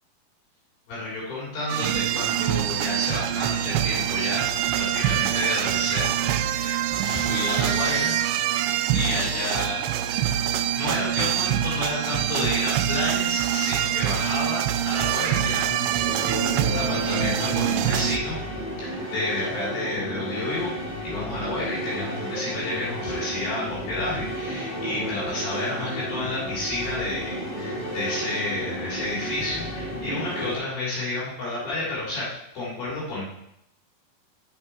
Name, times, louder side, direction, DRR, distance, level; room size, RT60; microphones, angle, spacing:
voice 1, 0.9-4.5 4.7-8.1 8.9-9.8 10.1-10.4 10.7-18.4 18.8-20.7 21.0-32.3 32.5-33.3, left 2 dB, 75° left, -8 dB, 5.2 m, -31 dB
sound 1, 1.7-18.2, right 11 dB, 85° right, 2.4 m, -25 dB
sound 2, 15.9-30.6, equal, 10° right, 1.1 m, -32 dB
7.7 x 7.4 x 4.6 m, 0.80 s
omnidirectional pair, 4.2 m